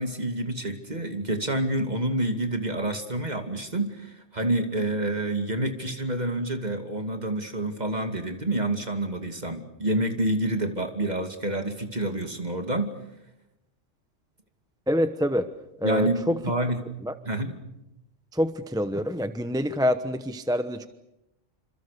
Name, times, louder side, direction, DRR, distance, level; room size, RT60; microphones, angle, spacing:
voice 1, 0.0-13.0 15.8-16.8 17.2-17.6, right 1 dB, 35° right, 6 dB, 2.5 m, -28 dB
voice 2, 14.9-15.5 15.8-16.4 17.0-17.1 18.3-20.9, equal, 5° right, 10 dB, 0.8 m, -26 dB
27.5 x 26.5 x 6.7 m, 0.89 s
omnidirectional pair, 1.3 m